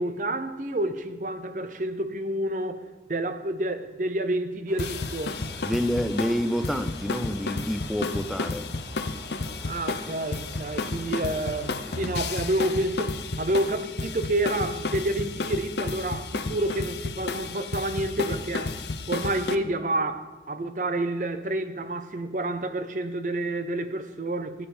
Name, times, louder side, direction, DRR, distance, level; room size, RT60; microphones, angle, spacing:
voice 1, 0.0-2.8 3.1-5.4 9.6-18.8 19.1-24.7, right 1 dB, 45° right, 0.7 m, -29 dB
sound 1, 4.7-12.5, right 1 dB, 65° right, 4.9 m, -47 dB
sound 2, 4.8-19.6, left 3 dB, 75° left, 0.7 m, -32 dB
voice 2, 5.6-8.7, equal, ahead, 0.5 m, -28 dB
16.0 x 9.6 x 4.3 m
head